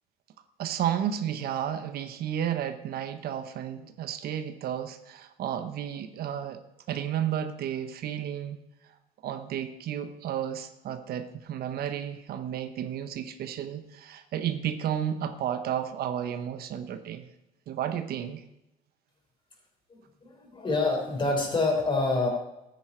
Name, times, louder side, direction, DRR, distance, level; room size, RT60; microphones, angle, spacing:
voice 1, 0.6-6.6 6.9-8.6 9.2-17.3 17.7-18.4, right 10 dB, 65° right, 9 dB, 0.9 m, -32 dB
voice 2, 19.9-22.3, left 3 dB, 30° left, 2 dB, 3.9 m, -27 dB
13.5 x 9.4 x 4.4 m, 0.90 s
cardioid pair, 110°, 17 cm